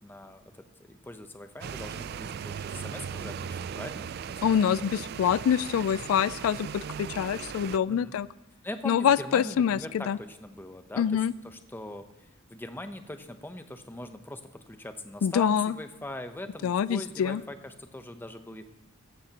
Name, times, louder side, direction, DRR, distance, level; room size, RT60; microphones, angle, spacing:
voice 1, 0.0-4.1 4.4-4.7 7.9-8.1 8.6-12.1 12.5-18.6, left 1 dB, 10° left, 8 dB, 0.7 m, -41 dB
sound 1, 1.6-7.8, right 7 dB, 50° right, 0.3 m, -38 dB
voice 2, 4.4-8.3 8.8-10.2 11.0-11.3 15.2-15.7 16.6-17.4, left 8 dB, 80° left, 19 dB, 0.3 m, -25 dB
15.5 x 13.5 x 2.9 m, 0.97 s
head